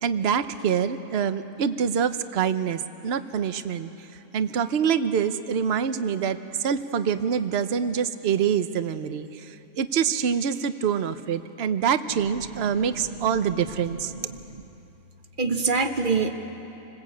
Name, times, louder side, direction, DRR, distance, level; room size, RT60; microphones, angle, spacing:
voice 1, 0.0-4.1 4.3-14.1, right 7 dB, 55° right, 11 dB, 1.0 m, -25 dB
voice 2, 14.3-14.6 15.4-16.3, right 4 dB, 40° right, 6 dB, 1.4 m, -25 dB
28.5 x 20.5 x 8.5 m, 3.0 s
omnidirectional pair, 1.4 m